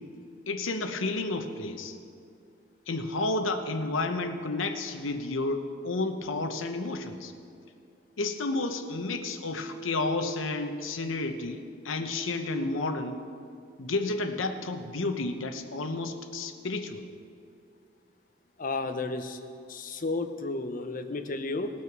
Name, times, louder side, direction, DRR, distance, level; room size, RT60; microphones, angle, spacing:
voice 1, 0.5-2.0 2.9-7.3 8.2-13.2 13.8-17.1, left 2 dB, 90° left, 7 dB, 0.9 m, -31 dB
voice 2, 18.6-19.4 19.7-21.7, left 3 dB, 45° left, 7 dB, 0.8 m, -32 dB
18.5 x 6.4 x 6.0 m, 2.4 s
head